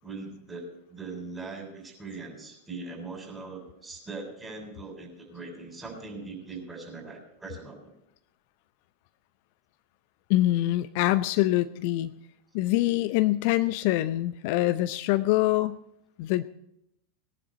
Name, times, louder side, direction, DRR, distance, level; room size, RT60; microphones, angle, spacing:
voice 1, 0.0-7.9, right 3 dB, 15° right, 0 dB, 7.0 m, -41 dB
voice 2, 10.3-12.1 12.5-15.8 16.2-16.4, left 16 dB, 55° left, 12 dB, 0.6 m, -24 dB
19.0 x 11.0 x 4.3 m, 0.79 s
hypercardioid pair, 90°, 0 cm